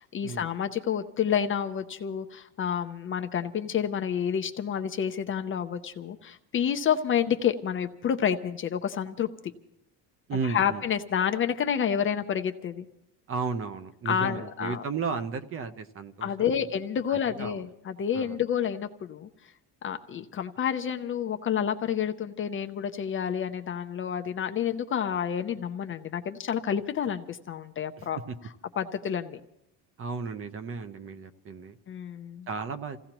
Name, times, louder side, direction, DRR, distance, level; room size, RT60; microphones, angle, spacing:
voice 1, 0.0-9.3 10.4-12.9 14.1-14.8 16.2-19.3 19.8-28.2 28.8-29.4 31.9-32.5, left 8 dB, 30° left, 7 dB, 0.6 m, -29 dB
voice 2, 10.3-10.8 13.3-16.7 17.1-17.6 18.1-18.4 28.0-28.4 30.0-31.8 32.5-33.0, right 5 dB, 35° right, 10 dB, 0.8 m, -34 dB
28.5 x 16.5 x 3.0 m, 0.82 s
cardioid pair, 170°, 41 cm